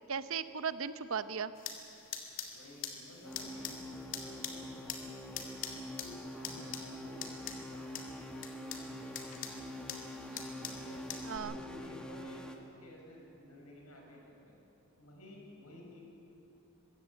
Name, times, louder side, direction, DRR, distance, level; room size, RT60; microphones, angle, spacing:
voice 1, 0.1-1.5 6.6-6.8 10.3-10.8 11.2-11.5, right 6 dB, 65° right, 12 dB, 0.8 m, -38 dB
sound 1, 1.5-11.4, left 7 dB, 60° left, 2.2 m, -45 dB
voice 2, 2.5-5.6 5.9-10.3 10.6-14.6 15.0-16.0, left 1 dB, 85° left, 0 dB, 5.6 m, -54 dB
sound 2, 3.2-12.6, equal, 5° left, 1.3 m, -45 dB
21.5 x 15.5 x 8.4 m, 2.9 s
head